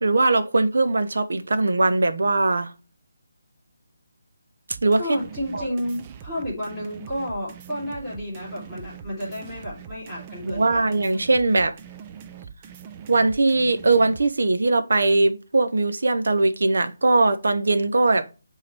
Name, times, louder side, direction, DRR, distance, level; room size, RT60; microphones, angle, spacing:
voice 1, 0.0-2.7 4.8-5.2 5.5-5.7 10.4-11.8 13.1-18.3, right 2 dB, 70° right, 0.8 m, -20 dB
sound 1, 4.7-14.2, right 7 dB, 20° right, 0.4 m, -42 dB
voice 2, 5.0-10.9, equal, ahead, 2.7 m, -31 dB
8.1 x 3.8 x 3.3 m
hypercardioid pair, 170°, 0 cm